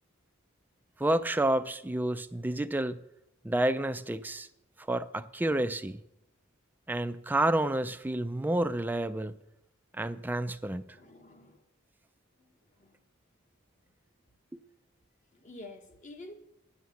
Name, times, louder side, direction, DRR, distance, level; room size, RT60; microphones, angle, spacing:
voice 1, 1.0-3.0 3.4-4.5 4.9-6.0 6.9-9.3 9.9-10.8 14.5-14.6, right 1 dB, 10° right, 0.3 m, -29 dB
voice 2, 10.9-11.6 12.4-12.5 12.8-13.0 15.3-16.3, left 2 dB, 35° left, 1.2 m, -49 dB
9.5 x 7.8 x 6.9 m
head